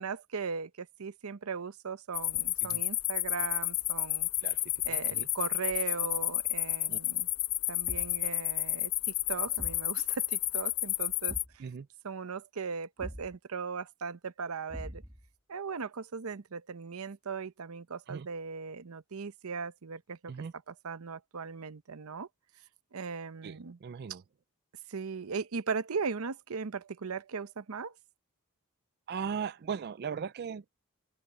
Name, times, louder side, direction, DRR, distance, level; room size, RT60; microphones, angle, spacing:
voice 1, 0.0-4.3 4.9-7.3 7.7-11.7 12.0-15.0 15.5-22.3 22.9-23.8 24.1-24.2 24.9-27.9, right 5 dB, 85° right, 0.7 m, -38 dB
sound 1, 2.1-11.4, left 16 dB, 75° left, 1.2 m, -31 dB
voice 2, 4.9-5.3 6.9-7.0 11.6-11.9 18.1-18.3 20.3-20.5 23.4-24.2 29.1-30.6, right 6 dB, 50° right, 0.4 m, -38 dB
Thump thud, 7.9-8.3 9.6-9.9 11.3-11.6 13.0-13.4 14.7-15.3, equal, 10° right, 2.5 m, -43 dB
head